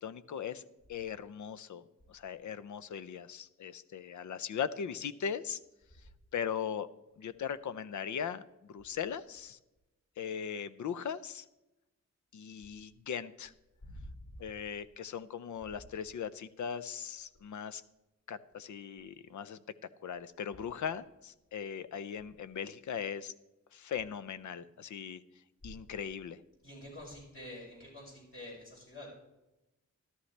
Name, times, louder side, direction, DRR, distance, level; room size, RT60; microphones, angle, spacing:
voice 1, 0.0-5.6 6.3-6.9 7.2-8.4 8.7-9.6 10.2-11.4 12.3-13.5 14.4-17.8 18.3-19.6 20.0-23.3 23.7-25.2 25.6-26.4, left 7 dB, 80° left, 14 dB, 0.6 m, -39 dB
voice 2, 26.6-29.1, left 1 dB, 45° left, -4 dB, 5.5 m, -47 dB
14.0 x 12.5 x 3.3 m, 0.96 s
wide cardioid pair, 145°, 29 cm